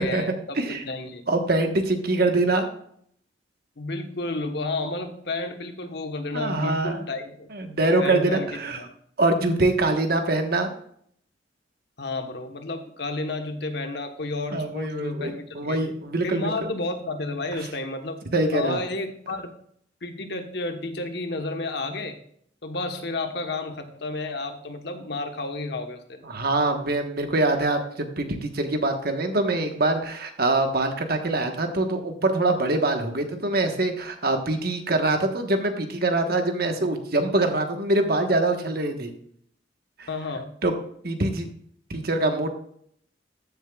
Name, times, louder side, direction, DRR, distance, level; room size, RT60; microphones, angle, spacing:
voice 1, 0.0-0.6 0.8-1.2 3.8-7.5 8.0-8.8 12.0-15.8 16.2-18.2 18.5-19.5 20.0-22.2 22.6-26.2 40.1-40.5, left 2 dB, 65° left, 6 dB, 1.1 m, -31 dB
voice 2, 1.3-2.7 6.3-7.0 7.5-8.8 9.2-10.7 14.5-16.5 18.3-18.8 26.2-39.1 40.0-40.1 40.6-40.7 41.0-41.5 41.9-42.5, right 2 dB, 55° right, 5 dB, 1.3 m, -24 dB
14.5 x 7.3 x 2.4 m, 0.64 s
head